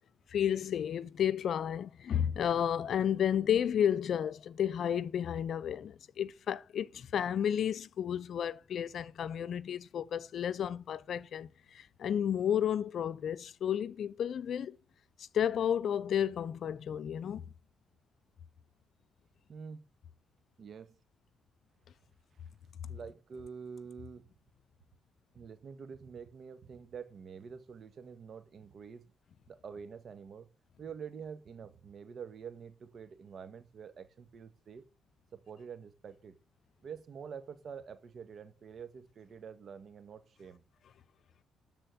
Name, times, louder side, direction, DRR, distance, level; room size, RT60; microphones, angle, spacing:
voice 1, 0.3-14.8 15.2-17.5, left 9 dB, 65° left, 0.6 m, -32 dB
voice 2, 19.5-19.9 20.6-21.0 22.3-22.5 22.9-24.3 25.3-29.1 29.5-30.5 30.8-34.9 35.3-36.4 36.8-40.6, right 6 dB, 55° right, 1.7 m, -47 dB
12.5 x 4.4 x 7.9 m
supercardioid pair, 60°, 0 cm